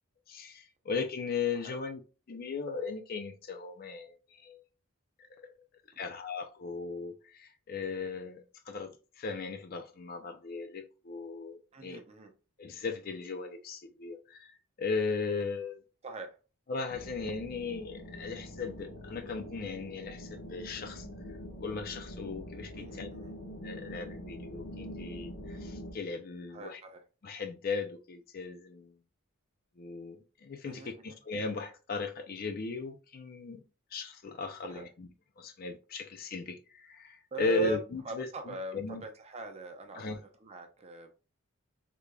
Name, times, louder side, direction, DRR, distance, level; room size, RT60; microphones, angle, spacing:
voice 1, 0.3-2.0 2.3-4.6 5.2-5.5 6.0-12.0 12.6-15.8 16.7-23.1 23.6-26.8 27.2-29.0 29.8-33.6 33.9-35.1 35.4-39.0 40.0-40.2, left 4 dB, 45° left, 0.4 m, -37 dB
voice 2, 11.7-12.3 16.0-16.4 22.8-23.3 26.5-27.0 30.6-31.0 34.6-34.9 37.3-37.8 38.0-40.0 40.4-41.1, right 1 dB, 30° right, 0.6 m, -41 dB
sound 1, 16.9-25.9, equal, 65° left, 1.0 m, -44 dB
3.7 x 3.3 x 2.2 m
head